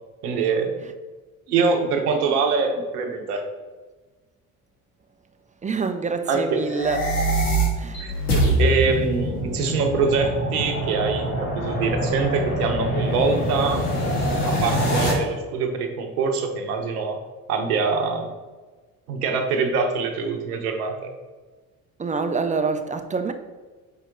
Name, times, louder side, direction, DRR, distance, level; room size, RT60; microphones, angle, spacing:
voice 1, 0.2-0.8 1.5-3.4 6.3-6.6 8.0-8.1 8.6-13.9 14.4-17.2 17.5-18.3 19.1-21.1, right 4 dB, 85° right, 0.9 m, -24 dB
voice 2, 5.6-7.0 7.8-8.1 22.0-23.3, right 4 dB, 15° right, 0.6 m, -26 dB
sound 1, 6.6-15.1, equal, 85° left, 1.6 m, -24 dB
5.6 x 4.5 x 3.8 m
hypercardioid pair, 55°, 44 cm